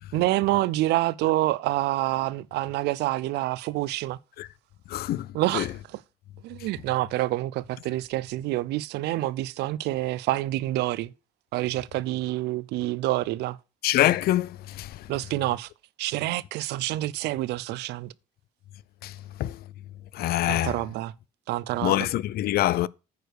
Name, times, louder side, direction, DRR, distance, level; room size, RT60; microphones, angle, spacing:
voice 1, 0.1-4.2 5.3-5.7 6.4-11.1 11.5-13.6 15.1-15.7 16.0-18.1 20.5-21.1 21.5-22.0, right 16 dB, 80° right, 0.5 m, -27 dB
voice 2, 4.9-5.7 13.8-15.1 19.0-19.6 20.1-20.8 21.8-22.9, left 14 dB, 65° left, 0.4 m, -25 dB
9.3 x 4.9 x 6.4 m
cardioid pair, 110°, 17 cm